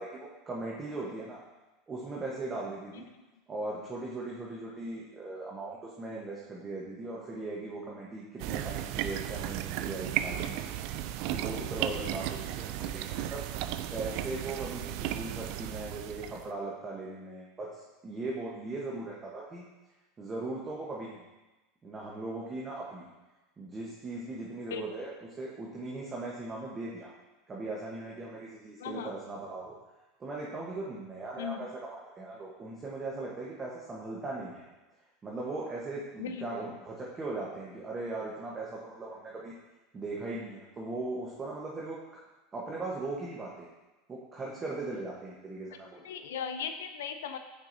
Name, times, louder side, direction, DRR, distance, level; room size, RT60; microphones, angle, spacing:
voice 1, 0.0-1.4 1.9-3.1 3.5-10.6 11.3-13.4 13.9-19.6 20.2-21.2 21.8-23.1 23.6-27.1 27.5-29.7 30.2-34.6 35.2-39.5 39.9-42.2 42.5-43.7 44.1-46.0, right 2 dB, 25° right, -4 dB, 1.0 m, -39 dB
sound 1, 8.4-16.5, right 11 dB, 60° right, 0.3 m, -35 dB
voice 2, 28.8-29.1 31.4-31.7 36.2-36.4 46.0-47.4, left 7 dB, 90° left, 7 dB, 0.5 m, -37 dB
8.7 x 4.6 x 2.7 m, 1.1 s
supercardioid pair, 120°, 0 cm